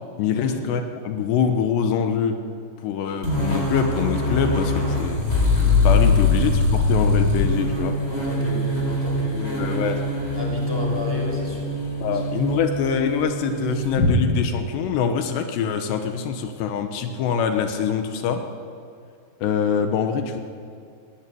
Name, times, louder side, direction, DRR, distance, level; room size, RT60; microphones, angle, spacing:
voice 1, 0.2-2.4 2.8-5.3 5.8-8.0 9.6-10.0 12.0-18.4 19.4-20.4, left 7 dB, 85° left, 6 dB, 3.3 m, -24 dB
sound 1, 3.2-14.1, left 2 dB, 30° left, 8.3 m, -22 dB
voice 2, 8.1-9.8 10.3-11.7 12.1-12.2, equal, 5° left, -1 dB, 4.8 m, -32 dB
19.5 x 17.5 x 9.1 m, 2.3 s
omnidirectional pair, 4.8 m